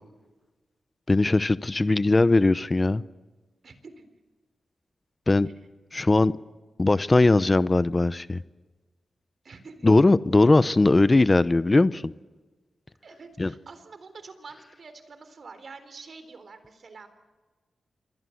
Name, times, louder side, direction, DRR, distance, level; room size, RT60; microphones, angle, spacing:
voice 1, 1.1-3.0 5.3-5.5 5.9-6.3 6.8-8.4 9.8-12.1 13.4-13.5, left 2 dB, 30° left, 15 dB, 0.8 m, -20 dB
voice 2, 3.6-4.0 5.4-5.5 9.4-9.9 11.4-11.5 13.0-17.1, right 4 dB, 65° right, 10 dB, 3.8 m, -46 dB
27.5 x 23.0 x 7.8 m, 1.3 s
cardioid pair, 60°, 0 cm